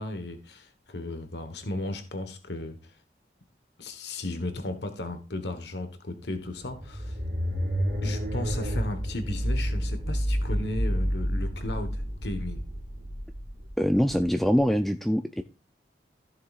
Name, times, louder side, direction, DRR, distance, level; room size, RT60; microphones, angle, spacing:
voice 1, 0.0-2.9 3.8-7.2 8.0-12.6, left 2 dB, 80° left, 8 dB, 1.2 m, -35 dB
sound 1, 6.4-14.6, equal, 60° right, 2.6 m, -30 dB
voice 2, 13.8-15.4, equal, ahead, 7 dB, 0.4 m, -24 dB
15.0 x 6.6 x 2.4 m, 0.33 s
head